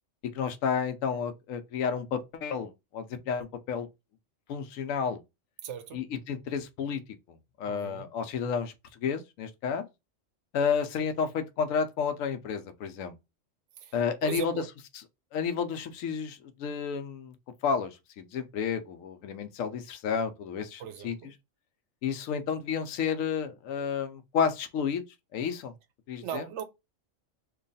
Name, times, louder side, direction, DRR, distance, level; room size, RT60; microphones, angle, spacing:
voice 1, 0.3-3.9 4.5-5.2 5.9-7.0 7.6-8.7 9.0-9.9 10.5-13.1 13.9-14.5 15.3-17.3 17.6-21.2 22.0-25.0 25.3-25.7 26.1-26.4, left 6 dB, 85° left, 1.0 m, -31 dB
voice 2, 5.6-6.0 7.6-8.1 13.8-13.9 14.2-14.7 20.8-21.3 26.2-26.6, right 9 dB, 70° right, 0.8 m, -38 dB
3.1 x 2.3 x 3.9 m
omnidirectional pair, 1.3 m